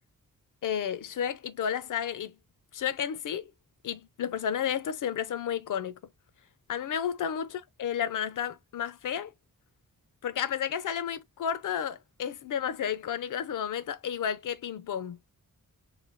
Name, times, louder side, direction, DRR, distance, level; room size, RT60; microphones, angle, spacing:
voice 1, 0.6-2.3 2.7-3.5 3.8-6.0 6.7-9.3 10.2-15.2, left 8 dB, 65° left, 0.5 m, -32 dB
3.2 x 2.2 x 2.5 m
wide cardioid pair, 120°, 34 cm